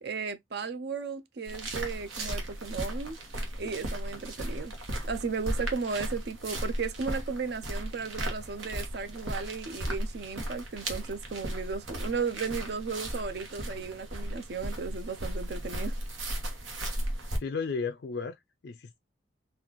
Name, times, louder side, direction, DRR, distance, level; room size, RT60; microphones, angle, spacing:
voice 1, 0.0-3.2 3.6-4.8 5.0-16.0, right 5 dB, 55° right, 0.4 m, -35 dB
sound 1, 1.5-17.4, right 1 dB, 90° right, 1.2 m, -36 dB
voice 2, 17.4-19.0, left 5 dB, 55° left, 0.3 m, -34 dB
4.1 x 2.4 x 2.9 m
head